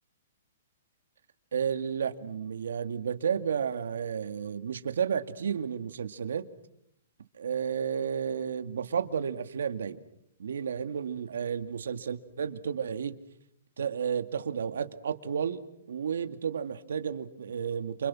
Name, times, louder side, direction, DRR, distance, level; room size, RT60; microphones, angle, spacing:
voice 1, 1.5-6.5 7.3-10.0 10.4-13.2 13.8-15.6 15.9-18.1, right 7 dB, 85° right, 10 dB, 2.2 m, -32 dB
29.5 x 28.5 x 6.3 m, 0.75 s
hypercardioid pair, 175°, 0 cm